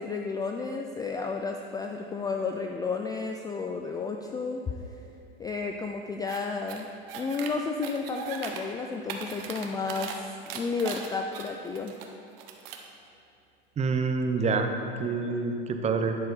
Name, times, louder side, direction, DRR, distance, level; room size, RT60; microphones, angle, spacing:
voice 1, 0.0-4.7 5.4-6.9 7.2-10.3 10.5-11.9, left 4 dB, 15° left, 3 dB, 0.3 m, -32 dB
sound 1, 6.3-6.4 6.7-7.5 7.8-8.6 8.9-10.1 10.5-12.0 12.4-12.9, right 7 dB, 75° right, 1.0 m, -38 dB
voice 2, 13.8-14.7 15.0-16.2, right 4 dB, 25° right, 6 dB, 0.7 m, -27 dB
9.7 x 6.4 x 4.1 m, 2.7 s
hypercardioid pair, 105°, 29 cm